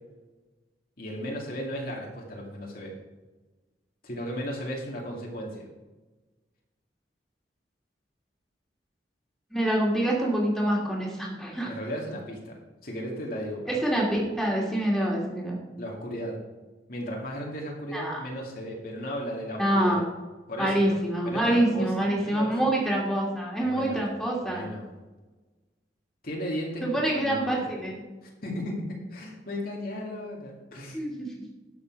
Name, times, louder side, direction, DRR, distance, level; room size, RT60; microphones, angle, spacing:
voice 1, 1.0-2.9 4.0-5.7 11.6-13.8 15.8-16.4 16.9-20.0 20.5-21.0 21.2-22.7 23.6-24.0 24.5-24.9 26.2-27.7 28.2-31.0, equal, 55° left, -1 dB, 2.3 m, -35 dB
voice 2, 9.5-11.7 13.7-15.6 17.9-18.2 19.6-20.0 20.6-24.7 26.8-28.0 30.9-31.3, right 1 dB, ahead, -3 dB, 2.7 m, -26 dB
11.5 x 7.4 x 4.6 m, 1.2 s
head